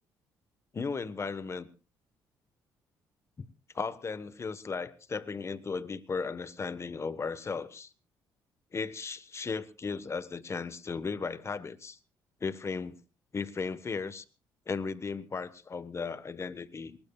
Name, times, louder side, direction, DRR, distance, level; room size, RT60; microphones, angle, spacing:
voice 1, 0.7-1.7 3.4-3.5 3.7-7.9 8.7-12.0 12.4-13.0 13.3-14.2 14.7-17.0, left 5 dB, 35° left, 14 dB, 1.3 m, -36 dB
22.0 x 20.0 x 2.4 m, 0.34 s
cardioid pair, 75°, 8 cm